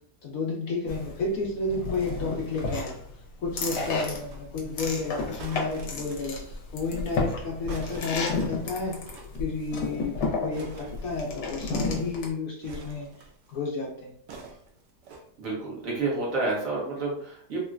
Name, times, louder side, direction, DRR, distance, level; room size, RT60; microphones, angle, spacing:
voice 1, 0.2-3.0 3.4-9.0 9.4-14.1, left 3 dB, 65° left, -1 dB, 0.9 m, -31 dB
sound 1, 0.9-12.3, left 3 dB, 80° left, 1.3 m, -32 dB
sound 2, 1.9-3.0 3.7-4.4 5.4-6.5 7.7-9.4 9.6-9.7 9.9-10.1 10.5-11.7 12.6-13.6 14.3-15.3 16.0-16.1, right 3 dB, 90° right, 1.2 m, -46 dB
voice 2, 15.4-17.6, right 3 dB, 55° right, -4 dB, 1.3 m, -29 dB
3.7 x 2.1 x 2.4 m, 0.62 s
omnidirectional pair, 1.8 m